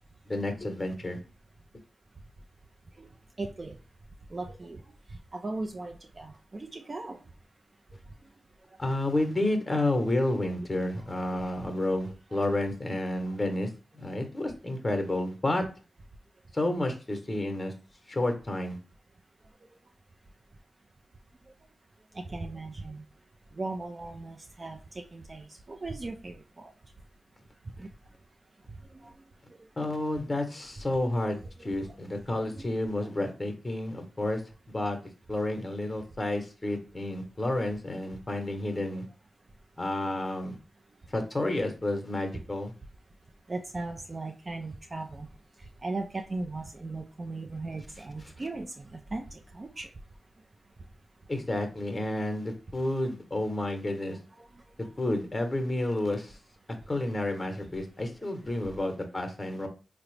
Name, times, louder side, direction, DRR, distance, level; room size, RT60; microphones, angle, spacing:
voice 1, 0.2-1.2 8.8-15.6 16.5-17.7 18.1-18.8 29.8-34.4 34.7-35.0 35.3-39.0 39.8-40.6 41.1-42.7 51.3-54.2 55.0-56.4 56.9-59.7, left 1 dB, 25° left, 5 dB, 0.8 m, -30 dB
voice 2, 3.4-3.7 4.3-4.8 5.3-7.2 11.1-11.5 22.3-23.0 23.6-24.8 25.1-26.7 27.8-27.9 32.5-32.6 43.5-45.3 45.8-49.9, right 2 dB, 40° right, 3 dB, 0.4 m, -37 dB
3.7 x 2.0 x 3.2 m, 0.34 s
cardioid pair, 45°, 0 cm